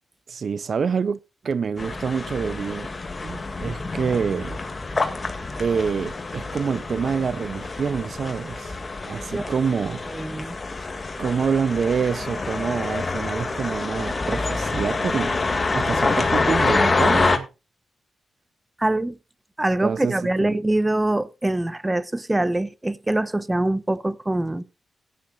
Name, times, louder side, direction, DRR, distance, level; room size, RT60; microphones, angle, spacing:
voice 1, 0.3-1.2 1.4-2.9 3.2-4.6 5.6-10.0 11.2-17.5 19.8-20.6, right 6 dB, 60° right, 0.5 m, -26 dB
sound 1, 1.8-17.4, left 3 dB, 35° left, 2.3 m, -26 dB
voice 2, 10.1-10.6 18.8-19.2 19.6-24.6, right 1 dB, 15° right, 0.8 m, -24 dB
17.0 x 10.5 x 2.5 m
cardioid pair, 75°, 0 cm